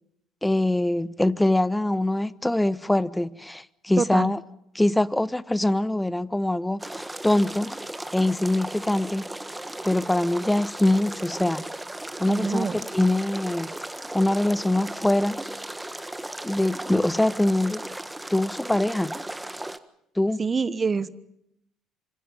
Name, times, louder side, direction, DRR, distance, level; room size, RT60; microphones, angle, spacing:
voice 1, 0.4-4.4 4.7-7.7 8.1-9.3 9.8-11.6 12.2-12.7 12.9-13.7 14.1-15.4 16.4-17.8 18.3-19.2 20.2-20.4, left 1 dB, 10° left, 0.9 m, -23 dB
voice 2, 4.0-4.3 12.3-12.8 20.4-21.2, right 5 dB, 35° right, 1.2 m, -26 dB
sound 1, 6.8-19.8, right 1 dB, 10° right, 1.5 m, -36 dB
26.5 x 25.5 x 5.4 m
hypercardioid pair, 55°, 0 cm